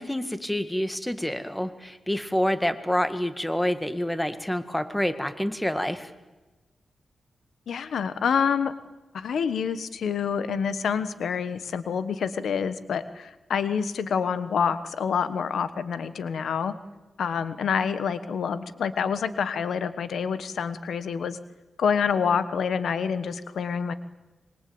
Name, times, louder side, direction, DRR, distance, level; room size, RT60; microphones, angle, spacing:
voice 1, 0.0-6.1, left 1 dB, 5° left, 10 dB, 1.8 m, -27 dB
voice 2, 7.7-8.7 9.1-16.7 17.2-21.4 21.8-23.9, left 6 dB, 90° left, 13 dB, 1.2 m, -27 dB
26.0 x 23.0 x 8.8 m, 1.1 s
wide cardioid pair, 100°, 0 cm